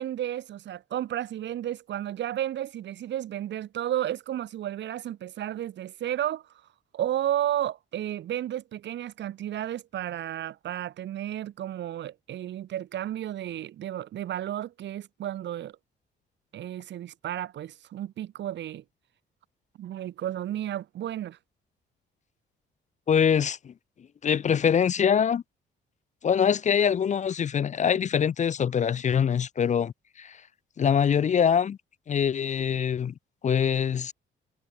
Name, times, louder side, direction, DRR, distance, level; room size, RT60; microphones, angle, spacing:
voice 1, 0.0-6.4 6.9-15.8 16.5-18.8 19.8-21.4, right 12 dB, 65° right, 0.8 m, -32 dB
voice 2, 23.1-23.7 24.2-25.4 26.2-30.4 30.8-31.8 32.1-33.1 33.4-34.1, left 7 dB, 40° left, 0.5 m, -24 dB
cardioid pair, 90°, 20 cm